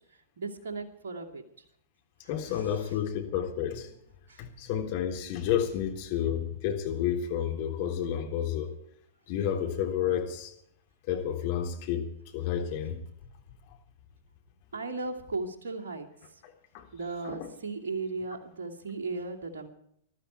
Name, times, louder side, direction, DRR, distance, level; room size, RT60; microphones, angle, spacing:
voice 1, 0.1-1.6 2.5-3.0 4.3-4.4 14.7-16.4 16.9-19.7, right 3 dB, 65° right, 3 dB, 2.5 m, -37 dB
voice 2, 2.3-3.9 4.4-8.7 9.3-10.5 11.1-13.0 16.7-16.8 17.2-17.4, left 9 dB, 45° left, 3 dB, 3.6 m, -30 dB
21.0 x 12.5 x 4.6 m, 0.70 s
figure-of-eight pair, 100°, 0 cm